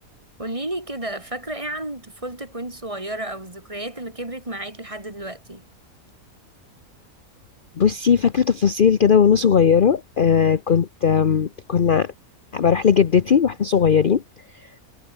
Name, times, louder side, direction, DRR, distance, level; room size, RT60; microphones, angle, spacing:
voice 1, 0.4-5.6, right 1 dB, 20° right, 3.1 m, -32 dB
voice 2, 7.8-12.1 12.5-14.2 14.5-14.7, left 7 dB, 45° left, 0.9 m, -18 dB
omnidirectional pair, 1.6 m